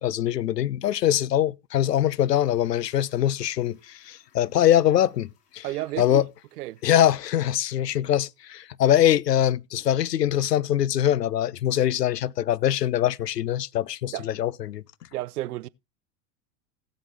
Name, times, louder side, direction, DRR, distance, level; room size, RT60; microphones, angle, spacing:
voice 1, 0.0-5.7 6.0-6.3 6.8-14.8, left 11 dB, 90° left, 0.6 m, -23 dB
Toilet flush, 1.7-8.8 9.1-9.2, left 6 dB, 50° left, 7.5 m, -64 dB
voice 2, 5.6-6.2 6.6-6.8 14.1-14.3 15.1-15.7, right 16 dB, 70° right, 0.6 m, -31 dB
17.0 x 7.6 x 3.2 m
hypercardioid pair, 95°, 47 cm